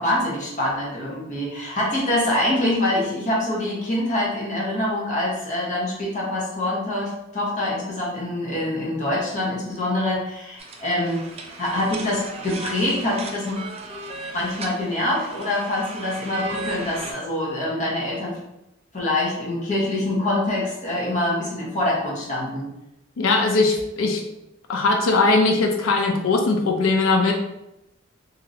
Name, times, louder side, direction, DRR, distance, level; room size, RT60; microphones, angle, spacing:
voice 1, 0.0-11.2 11.6-13.6 14.3-18.4 18.9-22.7, left 1 dB, 40° left, -5 dB, 1.0 m, -25 dB
sound 1, 10.6-17.1, right 2 dB, 30° right, 0.4 m, -36 dB
voice 2, 23.2-24.2 24.7-27.3, left 3 dB, 90° left, 2 dB, 0.4 m, -20 dB
3.0 x 2.7 x 2.7 m, 0.87 s
head